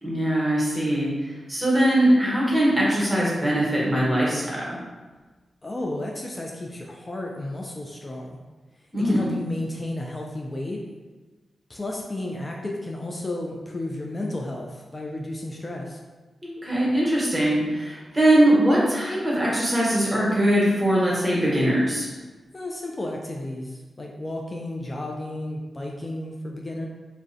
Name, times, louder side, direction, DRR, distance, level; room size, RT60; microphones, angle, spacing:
voice 1, 0.0-4.8 8.9-9.3 16.4-22.1, right 1 dB, 20° right, -6 dB, 1.0 m, -21 dB
voice 2, 5.6-8.4 9.0-10.8 11.7-16.0 22.5-26.9, left 1 dB, 35° left, -1 dB, 0.3 m, -32 dB
2.4 x 2.1 x 2.5 m, 1.3 s
supercardioid pair, 40°, 0 cm